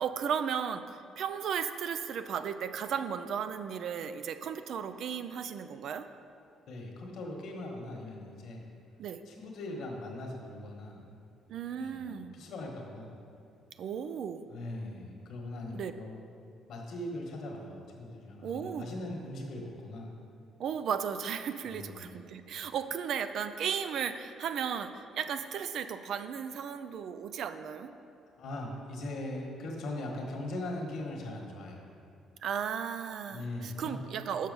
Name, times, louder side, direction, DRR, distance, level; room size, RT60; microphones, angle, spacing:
voice 1, 0.0-6.1 9.0-9.2 11.5-12.3 13.8-14.5 15.7-15.9 18.4-18.9 20.6-27.9 32.4-34.5, right 7 dB, 65° right, 10 dB, 0.4 m, -35 dB
voice 2, 6.7-8.6 9.3-11.1 11.8-13.1 14.5-16.2 16.7-20.1 21.7-22.1 28.4-31.9 33.3-34.0, left 1 dB, 65° left, 0 dB, 1.3 m, -40 dB
6.4 x 5.8 x 5.3 m, 2.5 s
cardioid pair, 110°, 0 cm